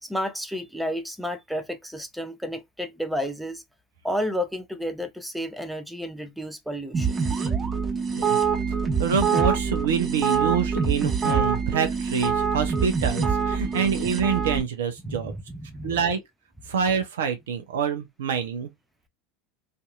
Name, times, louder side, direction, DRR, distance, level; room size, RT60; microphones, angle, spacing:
voice 1, 0.0-3.6 4.0-7.2 15.0-16.0, equal, ahead, 0.6 m, -31 dB
sound 1, 6.9-14.6, right 6 dB, 30° right, 1.1 m, -25 dB
voice 2, 9.0-15.3 15.8-16.2 16.7-18.7, right 6 dB, 70° right, 0.6 m, -26 dB
2.7 x 2.5 x 2.3 m
hypercardioid pair, 80°, 0 cm